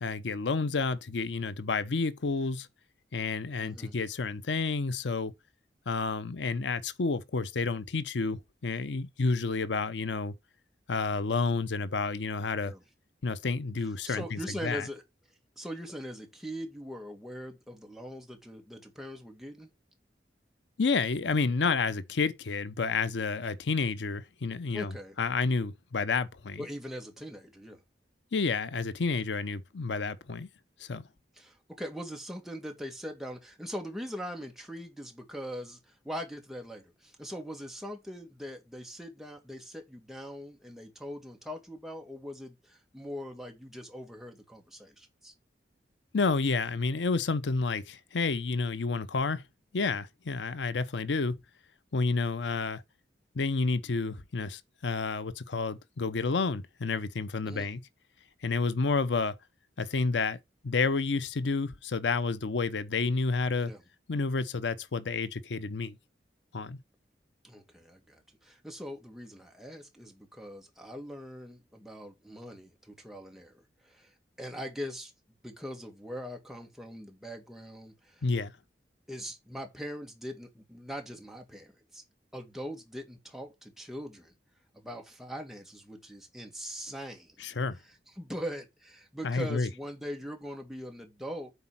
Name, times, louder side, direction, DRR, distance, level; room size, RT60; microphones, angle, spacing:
voice 1, 0.0-2.7 3.1-5.3 5.9-10.3 10.9-12.7 13.2-14.9 20.8-26.6 28.3-30.5 30.8-31.0 46.1-49.4 49.7-51.4 51.9-52.8 53.3-57.8 58.4-59.4 59.8-60.4 60.6-63.7 64.1-65.9 66.5-66.8 78.2-78.5 87.4-87.8 89.2-89.7, left 4 dB, 85° left, 0.7 m, -30 dB
voice 2, 3.6-3.9 12.6-12.8 13.8-15.0 15.6-19.7 24.7-25.2 26.6-27.8 31.3-45.3 57.5-57.7 63.6-63.8 67.4-75.1 75.4-78.2 79.1-82.0 82.3-84.3 84.7-87.4 88.2-91.5, equal, ahead, 2.0 m, -41 dB
8.0 x 4.3 x 5.8 m
head